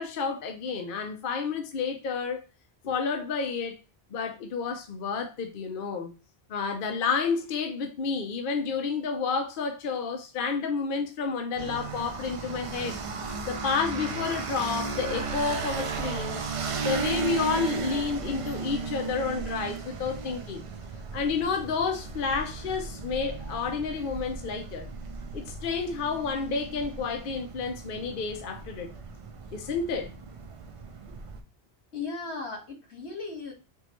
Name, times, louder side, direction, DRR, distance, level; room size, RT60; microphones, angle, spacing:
voice 1, 0.0-2.4 2.8-3.8 4.1-6.1 6.5-13.0 13.5-16.5 16.8-20.6 21.1-24.9 25.3-28.9 29.5-30.1, left 5 dB, 55° left, 0.8 m, -30 dB
sound 1, 11.6-31.4, right 4 dB, 50° right, 0.4 m, -35 dB
voice 2, 31.9-33.5, left 4 dB, 85° left, 1.9 m, -37 dB
4.4 x 3.1 x 3.0 m
omnidirectional pair, 1.1 m